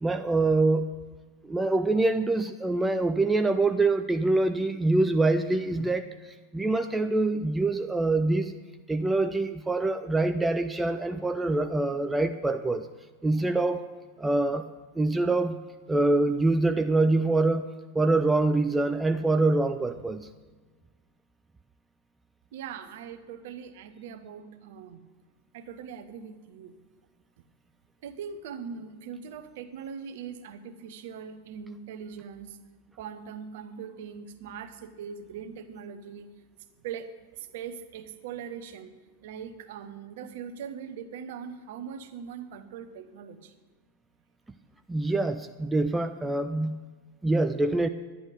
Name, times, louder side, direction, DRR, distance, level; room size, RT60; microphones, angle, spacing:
voice 1, 0.0-0.9 1.5-6.1 6.5-8.5 8.9-12.9 13.2-13.8 14.2-14.7 15.0-15.6 15.9-17.7 18.0-20.3 44.9-46.8 47.2-47.9, right 2 dB, 10° right, 8 dB, 0.4 m, -25 dB
voice 2, 22.5-25.0 25.5-26.8 28.0-32.6 33.0-36.3 36.8-39.0 39.2-43.5, right 7 dB, 55° right, 11 dB, 0.8 m, -41 dB
11.5 x 10.0 x 5.3 m, 1.4 s
figure-of-eight pair, 90°, 0 cm